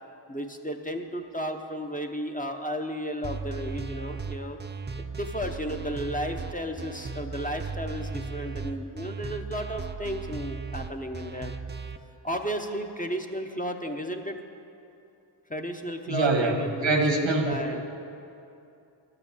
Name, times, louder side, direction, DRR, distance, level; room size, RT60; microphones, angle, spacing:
voice 1, 0.3-4.6 5.0-11.5 12.2-14.4 15.5-17.8, equal, 20° left, 4 dB, 0.7 m, -33 dB
sound 1, 3.2-12.0, right 4 dB, 25° right, 0.5 m, -36 dB
voice 2, 16.1-17.5, right 3 dB, 80° right, 2 dB, 1.4 m, -24 dB
12.0 x 6.8 x 7.2 m, 2.7 s
wide cardioid pair, 55°, 45 cm